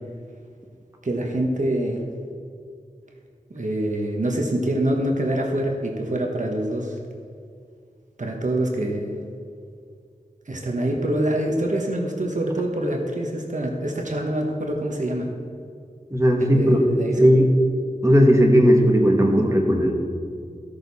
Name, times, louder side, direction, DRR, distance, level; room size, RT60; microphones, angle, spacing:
voice 1, 1.0-2.0 3.5-7.0 8.2-9.2 10.5-15.3 16.4-17.3, right 1 dB, 60° right, 1 dB, 1.3 m, -25 dB
voice 2, 16.1-16.8 17.2-17.5 18.0-19.9, equal, 20° right, 1 dB, 1.4 m, -16 dB
15.0 x 6.6 x 4.1 m, 2.3 s
wide cardioid pair, 65°, 14 cm